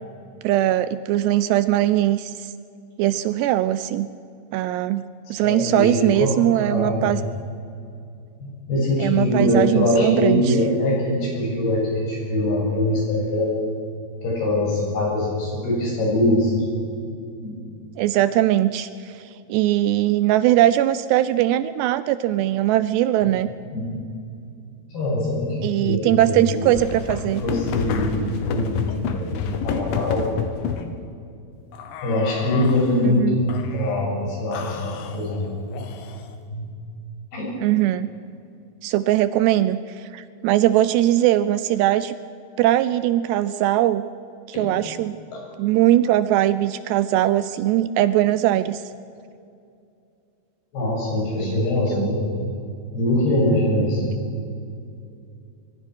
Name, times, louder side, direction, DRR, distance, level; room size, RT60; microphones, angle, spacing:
voice 1, 0.4-2.5 3.0-4.1 4.5-5.0 5.3-7.2 9.0-10.6 18.0-23.5 25.6-27.4 33.0-33.4 37.6-38.1 38.8-42.1 42.6-44.0 44.5-45.2 45.6-48.8 51.4-51.6 51.9-52.1, right 13 dB, 80° right, 14 dB, 2.6 m, -20 dB
voice 2, 5.3-6.3 6.7-7.1 8.4-13.6 14.2-16.6 17.4-17.6 23.2-23.3 23.7-24.0 24.9-26.4 27.2-30.3 32.0-33.5 33.7-35.4 36.2-36.7 37.3-37.6 44.5-44.7 45.3-45.4 50.7-52.3 52.9-54.0, left 1 dB, 60° left, -2 dB, 9.1 m, -23 dB
sound 1, 26.4-30.9 31.7-33.0 33.5-34.1 34.5-36.3, left 6 dB, 85° left, 3.8 m, -30 dB
25.0 x 22.5 x 6.3 m, 2.5 s
omnidirectional pair, 5.2 m